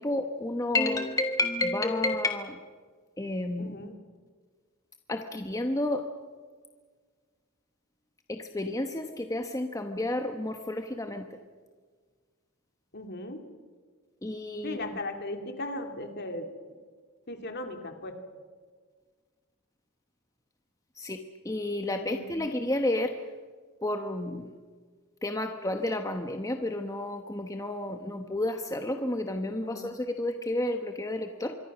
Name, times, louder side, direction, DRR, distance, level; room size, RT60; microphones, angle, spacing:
voice 1, 0.0-2.6 3.2-3.9 5.1-6.1 8.3-11.3 14.2-14.8 21.0-23.1 23.8-24.5 25.2-31.5, left 1 dB, 15° left, 5 dB, 1.1 m, -31 dB
voice 2, 3.6-4.0 12.9-13.4 14.6-16.5 17.3-18.2 22.0-22.4 29.6-29.9, left 1 dB, 50° left, 5 dB, 2.8 m, -37 dB
26.0 x 23.0 x 6.2 m, 1.6 s
head